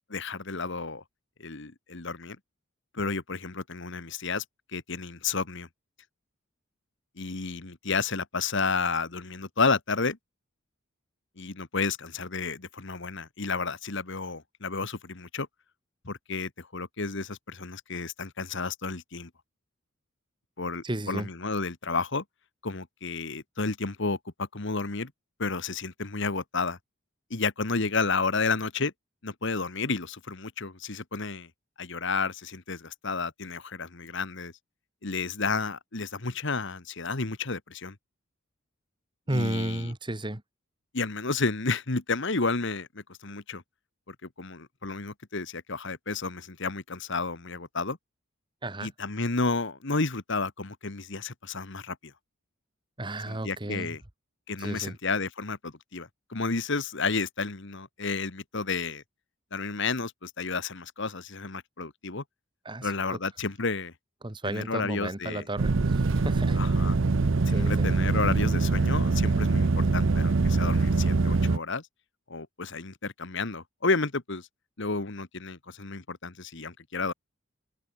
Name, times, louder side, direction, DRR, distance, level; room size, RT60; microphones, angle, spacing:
voice 1, 0.1-1.0 1.4-2.4 2.9-4.4 4.7-5.7 7.2-10.2 11.4-15.5 16.0-19.3 20.6-22.2 22.6-25.1 25.4-26.8 27.3-28.9 29.2-31.5 31.8-34.5 35.0-38.0 39.3-39.9 40.9-43.6 44.1-48.0 48.8-52.1 53.3-54.0 54.5-59.0 59.5-62.2 62.8-63.9 64.4-65.4 66.6-67.0 67.5-71.9 72.3-74.5 74.8-77.1, left 4 dB, 60° left, 1.6 m, -31 dB
voice 2, 20.8-21.3 39.3-40.4 48.6-48.9 53.0-54.0 54.6-55.0 62.6-63.2 64.2-66.6 67.5-67.9, right 1 dB, 20° right, 1.5 m, -33 dB
sound 1, 65.6-71.6, right 3 dB, 60° right, 0.7 m, -24 dB
head